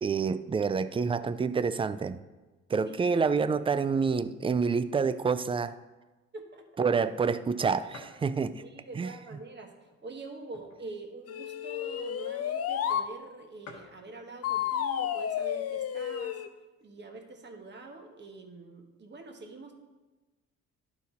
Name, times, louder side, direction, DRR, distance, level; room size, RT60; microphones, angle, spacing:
voice 1, 0.0-2.2 2.7-5.8 6.8-8.6 9.0-9.1, right 5 dB, 20° right, 14 dB, 0.3 m, -28 dB
voice 2, 2.8-3.2 6.3-6.7 8.6-16.4 16.8-19.7, right 3 dB, 35° right, 4 dB, 1.3 m, -45 dB
sound 1, 7.9-8.3 8.9-9.0 9.8-11.0 11.4-11.5 11.6-11.9 12.7-12.8 13.0-13.1 13.3-13.4 13.6-14.0 14.9-15.3 15.8-15.9 16.1-16.9, left 3 dB, 70° left, 1.5 m, -51 dB
sound 2, 11.3-13.1 14.4-16.5, left 9 dB, 55° left, 0.5 m, -31 dB
11.5 x 4.4 x 4.1 m, 1.2 s
cardioid pair, 90°, 30 cm